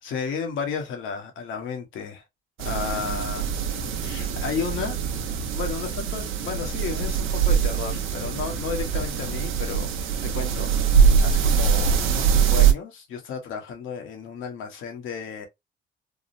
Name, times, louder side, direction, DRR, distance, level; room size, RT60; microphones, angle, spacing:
voice 1, 0.0-2.2 2.6-3.5 4.0-5.0 5.5-9.9 10.2-10.7 11.0-15.5, left 6 dB, 85° left, 1.1 m, -33 dB
sound 1, 2.6-12.7, right 7 dB, 85° right, 0.7 m, -23 dB
3.5 x 2.1 x 2.5 m
cardioid pair, 90°, 20 cm